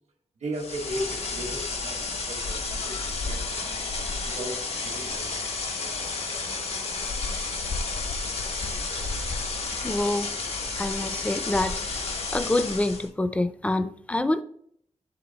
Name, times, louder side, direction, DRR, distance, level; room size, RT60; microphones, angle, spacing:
voice 1, 0.4-3.0 3.3-3.8 4.2-5.5, equal, 80° right, 2 dB, 1.3 m, -36 dB
sound 1, 0.5-13.1, left 3 dB, 65° left, 0.8 m, -31 dB
voice 2, 9.8-10.3 10.8-14.4, left 1 dB, 10° left, 11 dB, 0.4 m, -27 dB
7.8 x 3.4 x 4.0 m, 0.65 s
wide cardioid pair, 140°, 12 cm